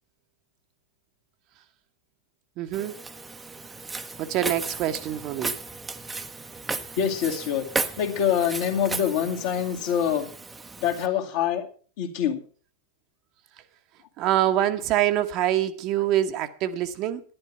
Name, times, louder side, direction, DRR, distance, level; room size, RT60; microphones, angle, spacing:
voice 1, 2.6-2.9 4.2-5.6 14.2-17.2, right 12 dB, 40° right, 1.0 m, -25 dB
Walk footsteps, 2.7-11.1, right 3 dB, 10° right, 0.8 m, -35 dB
voice 2, 7.0-7.7 8.0-10.3 10.8-11.7 12.0-12.4, left 9 dB, 50° left, 2.2 m, -25 dB
11.0 x 11.0 x 5.7 m
figure-of-eight pair, 90°, 0 cm